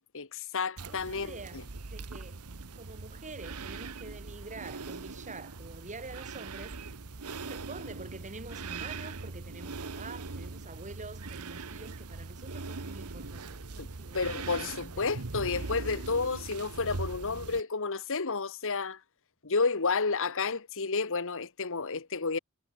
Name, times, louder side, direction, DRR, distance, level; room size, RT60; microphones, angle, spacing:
voice 1, 0.0-1.6 13.8-13.9 14.1-19.0 19.4-22.4, left 4 dB, 65° left, 1.6 m, -31 dB
sound 1, 0.8-17.6, right 3 dB, 85° right, 1.3 m, -41 dB
voice 2, 0.9-1.6 1.9-2.5 2.7-6.8 7.2-15.1, right 3 dB, 35° right, 3.7 m, -47 dB
head